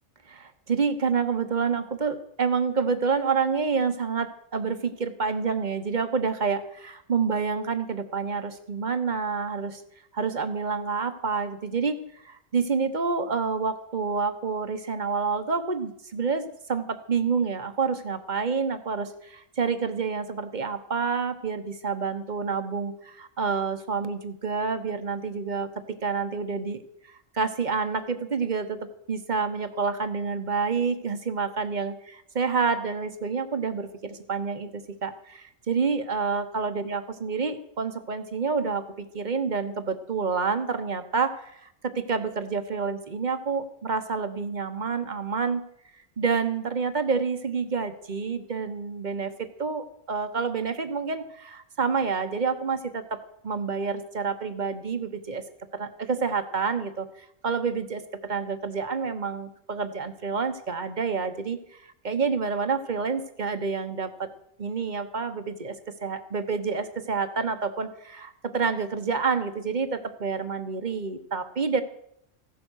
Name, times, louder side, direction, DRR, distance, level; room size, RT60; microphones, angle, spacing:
voice 1, 0.3-9.8 10.1-26.8 27.1-45.6 46.2-55.4 55.7-64.3 64.6-71.8, right 5 dB, 40° right, 9 dB, 1.2 m, -28 dB
15.5 x 11.0 x 6.3 m, 0.73 s
omnidirectional pair, 1.3 m